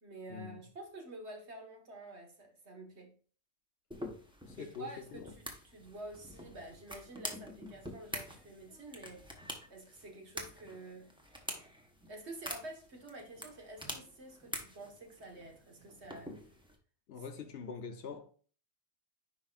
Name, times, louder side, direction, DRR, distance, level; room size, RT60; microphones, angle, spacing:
voice 1, 0.0-3.1 4.6-9.3 9.7-11.1 12.1-16.3 17.4-17.5, right 2 dB, 65° right, 1.8 m, -49 dB
sound 1, 3.9-16.8, equal, 5° right, 1.0 m, -47 dB
voice 2, 4.4-5.3 17.1-18.3, left 6 dB, 60° left, 0.9 m, -44 dB
10.0 x 4.9 x 2.5 m
omnidirectional pair, 1.2 m